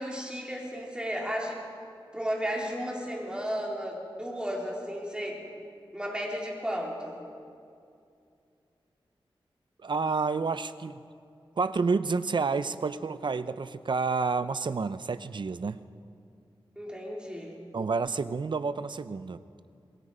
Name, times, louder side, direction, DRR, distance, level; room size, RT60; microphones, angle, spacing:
voice 1, 0.0-1.6 2.1-5.5 5.9-7.2 16.8-17.6, equal, 10° right, -2 dB, 4.3 m, -34 dB
voice 2, 9.8-11.0 11.6-15.8 17.7-19.4, right 4 dB, 55° right, 13 dB, 0.7 m, -29 dB
26.5 x 21.0 x 5.1 m, 2.4 s
wide cardioid pair, 95°, 9 cm